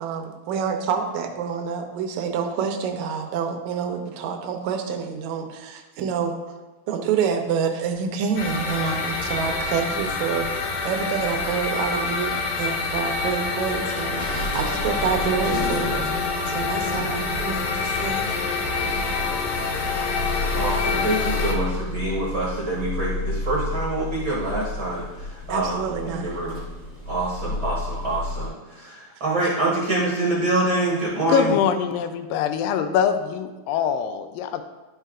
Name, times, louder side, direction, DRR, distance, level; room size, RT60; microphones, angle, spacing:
voice 1, 0.0-6.4 6.9-18.3 25.5-26.4, right 6 dB, 75° right, 4 dB, 1.8 m, -27 dB
sound 1, 8.4-21.5, left 4 dB, 60° left, 2.3 m, -26 dB
sound 2, 14.2-28.5, left 2 dB, 30° left, 1.4 m, -32 dB
voice 2, 20.5-26.6 27.1-31.5, right 2 dB, 55° right, -6 dB, 1.3 m, -26 dB
voice 3, 31.3-34.6, left 8 dB, 85° left, 8 dB, 2.3 m, -23 dB
12.0 x 5.6 x 2.4 m, 1.1 s
omnidirectional pair, 4.0 m